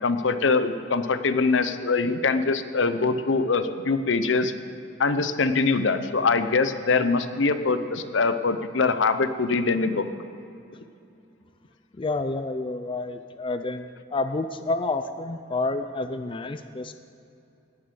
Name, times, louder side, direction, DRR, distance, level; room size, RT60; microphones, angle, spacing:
voice 1, 0.0-4.5 5.0-10.0, left 4 dB, 75° left, 11 dB, 0.7 m, -23 dB
voice 2, 11.9-16.9, left 2 dB, 25° left, 9 dB, 0.5 m, -29 dB
18.0 x 7.3 x 6.8 m, 2.7 s
head